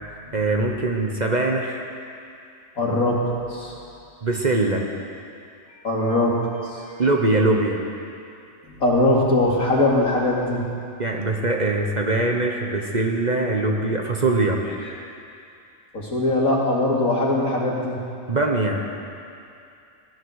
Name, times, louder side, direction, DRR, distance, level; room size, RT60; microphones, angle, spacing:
voice 1, 0.3-1.8 4.2-4.9 7.0-7.8 11.0-14.6 18.3-18.9, right 2 dB, 35° right, 1 dB, 1.2 m, -22 dB
voice 2, 2.8-3.7 5.8-6.4 6.6-6.8 8.7-10.7 14.8-14.9 15.9-18.0, left 1 dB, 80° left, -4 dB, 2.9 m, -21 dB
16.0 x 12.5 x 6.5 m, 2.5 s
omnidirectional pair, 1.4 m